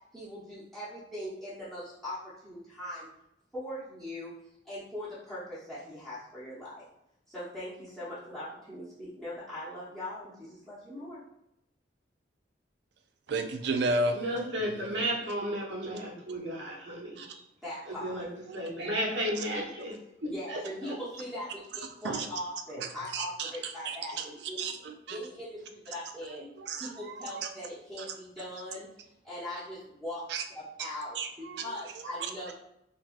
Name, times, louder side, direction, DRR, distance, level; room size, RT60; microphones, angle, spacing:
voice 1, 0.1-3.1 3.5-4.3 4.6-6.9 7.3-11.2 17.6-18.2 20.3-21.5 21.8-24.7 25.1-26.5 26.8-28.9 29.2-30.2 30.5-31.2 31.6-32.5, left 1 dB, ahead, -12 dB, 0.8 m, -40 dB
voice 2, 13.3-14.2 14.7-14.9 17.2-17.3 18.5-18.7 22.0-22.3 22.7-22.9 23.1-24.3 24.6-25.2 26.6-27.5 28.0-28.1 30.3-30.4 31.2-32.5, right 3 dB, 65° right, 6 dB, 0.4 m, -33 dB
voice 3, 14.1-17.2 17.9-18.3 18.5-20.6 20.8-20.9, equal, 80° right, -3 dB, 0.9 m, -33 dB
3.9 x 2.4 x 2.5 m, 0.80 s
head